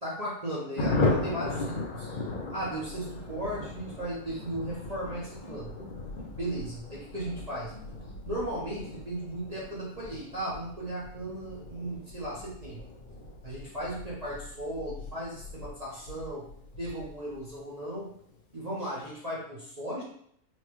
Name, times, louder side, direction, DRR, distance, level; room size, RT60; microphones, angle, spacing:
voice 1, 0.0-2.2 2.5-5.8 6.4-7.7 8.2-12.8 13.4-16.5 16.8-18.1 18.5-20.0, right 1 dB, 35° right, -7 dB, 0.7 m, -36 dB
Thunder, 0.8-16.9 17.2-17.3 17.5-17.7 17.9-18.4, left 2 dB, 55° left, 0.5 m, -36 dB
sound 1, 2.2-17.6, left 2 dB, 80° left, 1.8 m, -48 dB
sound 2, 2.8-8.5, equal, 20° left, 0.7 m, -52 dB
4.3 x 2.2 x 3.0 m, 0.66 s
omnidirectional pair, 1.6 m